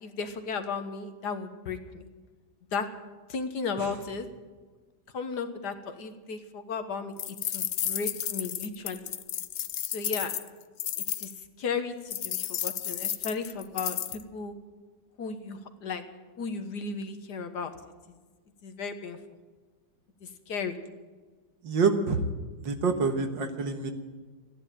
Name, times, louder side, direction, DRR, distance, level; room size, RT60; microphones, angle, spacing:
voice 1, 0.0-2.1 2.7-2.9 3.3-4.3 5.1-9.0 9.8-10.3 11.2-11.3 11.6-14.5 15.2-16.0 16.4-17.7 18.6-19.2 20.5-20.7, left 5 dB, 65° left, 8 dB, 1.7 m, -35 dB
sound 1, 7.2-11.3 12.1-14.2, left 11 dB, 85° left, 0.6 m, -32 dB
voice 2, 21.6-22.2 22.6-23.9, right 4 dB, 80° right, 6 dB, 2.1 m, -27 dB
14.5 x 10.5 x 9.0 m, 1.3 s
omnidirectional pair, 2.0 m